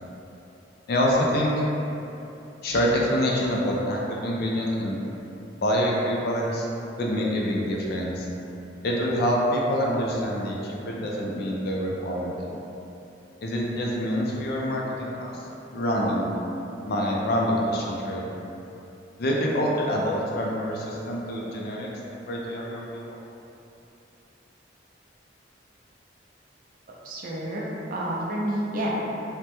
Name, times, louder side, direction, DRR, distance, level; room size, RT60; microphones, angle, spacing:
voice 1, 0.9-1.5 2.6-5.0 5.5-6.7 7.0-8.3 8.8-12.5 13.4-15.5 15.7-16.2 16.8-18.3 19.2-23.2, equal, 55° left, -3 dB, 0.4 m, -26 dB
voice 2, 27.0-28.9, right 1 dB, 45° right, -4 dB, 0.4 m, -29 dB
3.3 x 2.1 x 2.8 m, 2.9 s
head